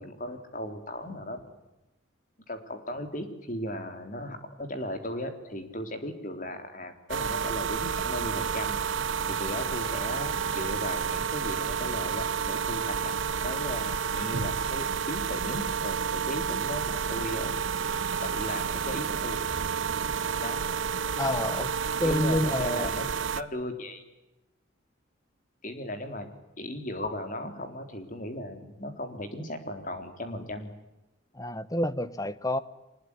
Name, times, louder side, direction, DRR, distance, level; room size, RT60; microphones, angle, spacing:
voice 1, 0.0-1.4 2.5-8.8 9.2-13.1 13.4-17.5 18.2-19.4 20.4-20.6 22.0-23.1 23.4-24.0 25.6-26.3 26.6-30.7, left 1 dB, 40° left, 7 dB, 3.8 m, -36 dB
sound 1, 7.1-23.4, right 6 dB, 85° right, 1.1 m, -30 dB
voice 2, 21.2-21.7 22.0-22.9 31.3-32.6, left 1 dB, 20° left, 16 dB, 1.0 m, -28 dB
24.5 x 21.0 x 9.8 m, 0.98 s
head